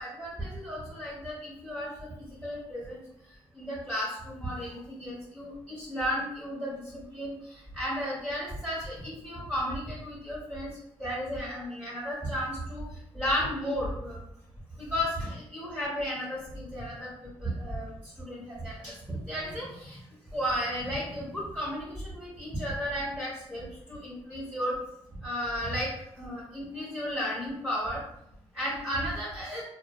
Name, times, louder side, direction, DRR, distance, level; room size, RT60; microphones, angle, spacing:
voice 1, 0.0-1.9 2.4-3.0 3.5-6.8 7.1-7.3 7.8-10.7 11.0-12.8 13.1-14.2 14.8-17.9 18.2-20.0 20.3-24.7 25.2-25.9 26.2-28.0 28.5-29.6, equal, 10° right, -8 dB, 1.0 m, -33 dB
2.6 x 2.2 x 2.2 m, 0.75 s
supercardioid pair, 60°, 11 cm